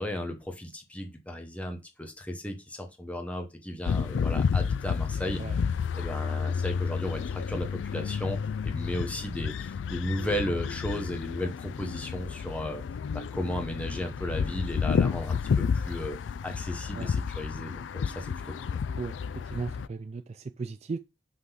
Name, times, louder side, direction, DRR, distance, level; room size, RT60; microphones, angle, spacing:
voice 1, 0.0-5.4 5.9-8.4 8.6-12.8 13.1-16.2 16.4-18.3 18.6-18.7, equal, 10° left, 1.0 m, -35 dB
sound 1, 3.9-19.9, left 6 dB, 75° left, 0.3 m, -31 dB
voice 2, 19.4-21.0, right 4 dB, 35° right, 0.3 m, -36 dB
5.8 x 3.8 x 5.6 m
head